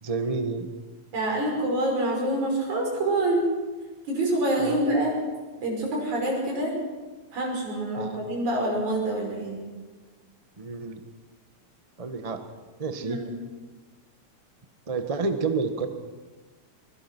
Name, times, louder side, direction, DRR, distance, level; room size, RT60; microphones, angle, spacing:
voice 1, 0.0-0.7 4.6-4.8 8.0-8.2 10.6-11.0 12.0-12.4 12.8-13.2 14.9-15.9, right 4 dB, 30° right, 7 dB, 0.6 m, -29 dB
voice 2, 1.1-3.4 4.1-5.1 5.6-6.7 7.3-9.6 13.0-13.3, right 1 dB, 80° right, 0 dB, 7.2 m, -26 dB
24.0 x 22.0 x 6.1 m, 1.3 s
omnidirectional pair, 3.3 m